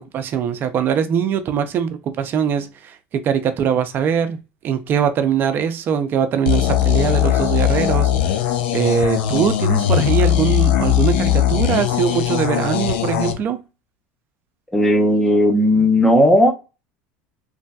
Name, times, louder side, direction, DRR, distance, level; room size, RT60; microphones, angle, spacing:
voice 1, 0.0-4.4 4.6-13.6, right 8 dB, 40° right, 0.6 m, -22 dB
sound 1, 6.5-13.3, left 11 dB, 80° left, 0.5 m, -19 dB
voice 2, 14.7-16.5, left 1 dB, 5° left, 0.8 m, -15 dB
3.2 x 2.5 x 2.3 m
supercardioid pair, 110°, 5 cm